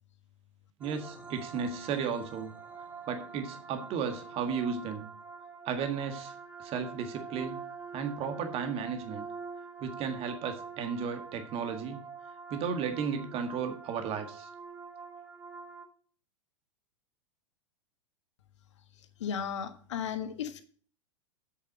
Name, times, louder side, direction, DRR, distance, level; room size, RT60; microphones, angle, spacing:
sound 1, 0.8-15.9, right 5 dB, 10° right, 2.7 m, -45 dB
voice 1, 0.8-2.5 3.1-5.1 5.7-6.3 6.6-7.6 7.9-9.3 9.8-12.0 12.5-14.5, right 6 dB, 35° right, 7 dB, 1.8 m, -34 dB
voice 2, 19.2-20.6, left 8 dB, 65° left, 9 dB, 1.5 m, -35 dB
8.5 x 6.7 x 5.1 m, 0.43 s
figure-of-eight pair, 95°, 16 cm